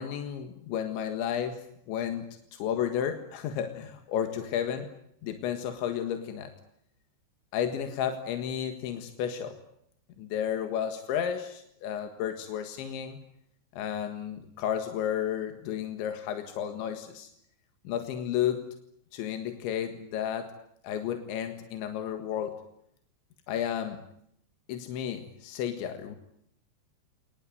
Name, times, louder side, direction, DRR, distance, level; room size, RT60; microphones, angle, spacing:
voice 1, 0.0-4.9 5.2-6.5 7.5-9.6 10.2-13.2 13.7-17.3 17.9-18.7 19.1-20.5 20.8-22.6 23.5-24.0 24.7-26.2, left 9 dB, 90° left, 7 dB, 4.1 m, -32 dB
29.5 x 19.5 x 9.2 m, 0.75 s
omnidirectional pair, 5.1 m